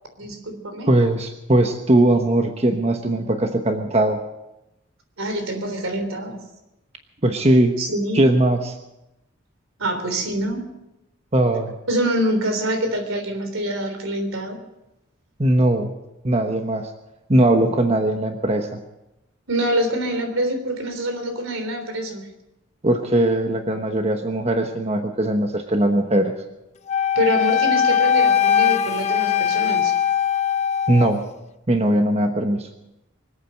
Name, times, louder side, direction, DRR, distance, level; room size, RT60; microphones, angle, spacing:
voice 1, 0.2-0.9 5.2-6.4 7.8-8.2 9.8-10.7 11.9-14.6 19.5-22.2 27.2-29.9, equal, 85° right, 6 dB, 3.5 m, -25 dB
voice 2, 0.9-4.2 7.2-7.7 8.1-8.7 11.3-11.7 15.4-15.9 16.2-16.9 17.3-18.8 22.8-26.3 30.9-31.2 31.7-32.7, right 1 dB, 30° right, 5 dB, 1.1 m, -19 dB
Wind instrument woodwind instrument, 26.9-31.2, left 8 dB, 35° left, 0.6 m, -20 dB
24.5 x 8.9 x 6.5 m, 0.93 s
head